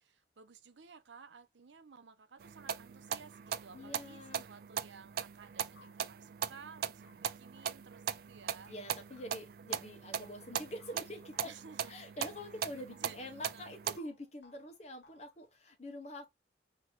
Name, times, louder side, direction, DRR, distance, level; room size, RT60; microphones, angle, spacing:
voice 1, 0.0-8.7 11.4-11.9 12.9-13.7, right 5 dB, 90° right, 0.7 m, -55 dB
sound 1, 2.4-14.0, right 8 dB, 55° right, 0.3 m, -40 dB
voice 2, 3.7-4.4 8.7-11.5 11.9-16.3, left 1 dB, 40° left, 1.1 m, -46 dB
sound 2, 5.8-12.1 12.4-13.7 14.0-15.4, left 3 dB, 85° left, 1.1 m, -64 dB
3.0 x 2.9 x 4.4 m
head